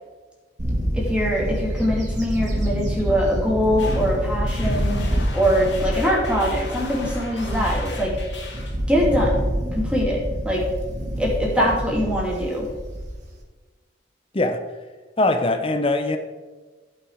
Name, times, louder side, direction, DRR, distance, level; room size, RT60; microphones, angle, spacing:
Bird / Wind, 0.6-13.4, equal, 40° right, 2.2 m, -27 dB
voice 1, 0.9-8.2 8.9-9.4 9.7-10.7 11.2-12.7, equal, 5° right, -4 dB, 2.7 m, -23 dB
sound 1, 3.8-8.8, left 3 dB, 65° left, 2.6 m, -38 dB
voice 2, 14.3-14.6 15.2-16.2, left 2 dB, 30° left, 7 dB, 0.7 m, -21 dB
15.5 x 5.7 x 5.0 m, 1.3 s
head